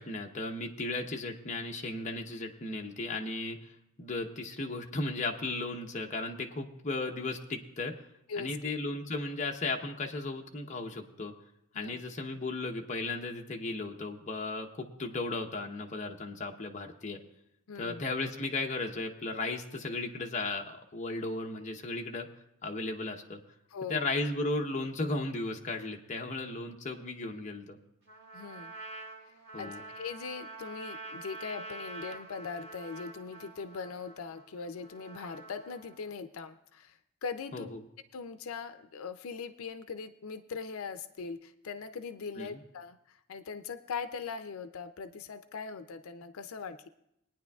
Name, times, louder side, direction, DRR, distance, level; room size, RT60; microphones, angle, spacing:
voice 1, 0.0-3.7 4.0-7.9 8.4-11.3 11.7-17.2 17.8-22.3 22.6-23.4 23.9-27.8 29.5-29.8 37.5-37.8 42.4-42.6, left 2 dB, 35° left, 2 dB, 0.8 m, -35 dB
voice 2, 17.7-18.0 23.7-24.1 28.3-28.7 29.2-37.7 38.1-46.9, left 5 dB, 80° left, 10 dB, 0.5 m, -41 dB
Trumpet, 28.1-36.1, right 3 dB, 50° right, 1.6 m, -46 dB
21.5 x 9.5 x 2.3 m, 0.79 s
head